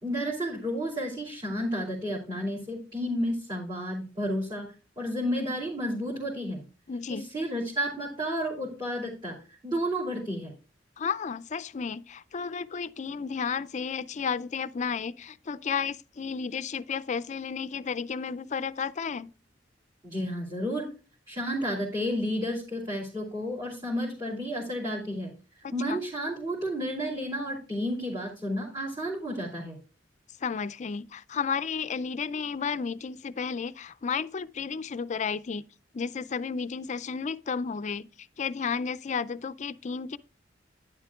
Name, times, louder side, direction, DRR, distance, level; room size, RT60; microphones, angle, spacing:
voice 1, 0.0-4.7 5.0-6.6 7.1-9.4 9.6-10.5 20.0-20.9 21.3-25.3 25.7-29.8, equal, 25° right, 2.9 m, -31 dB
voice 2, 6.9-7.3 11.0-19.3 25.6-26.0 30.4-35.6 35.9-38.1 38.4-40.2, left 6 dB, 40° left, 0.4 m, -32 dB
11.0 x 10.0 x 2.4 m
head